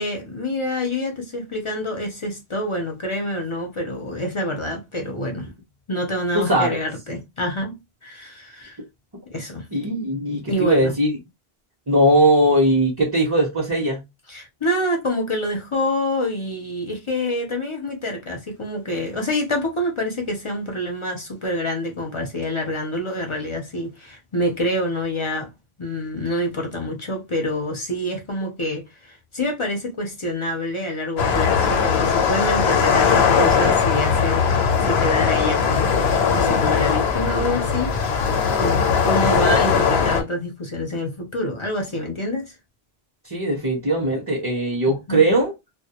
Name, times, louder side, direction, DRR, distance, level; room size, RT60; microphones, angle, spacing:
voice 1, 0.0-5.5 5.9-8.8 9.3-9.7 10.5-10.9 14.3-25.5 25.8-34.5 34.8-42.5 44.9-45.2, left 1 dB, 40° left, 0.5 m, -27 dB
voice 2, 6.3-6.8 9.7-11.2 11.9-14.0 43.3-45.5, right 1 dB, 30° right, 0.6 m, -19 dB
sound 1, 31.2-40.2, left 6 dB, 80° left, 0.9 m, -19 dB
2.2 x 2.1 x 2.8 m
omnidirectional pair, 1.0 m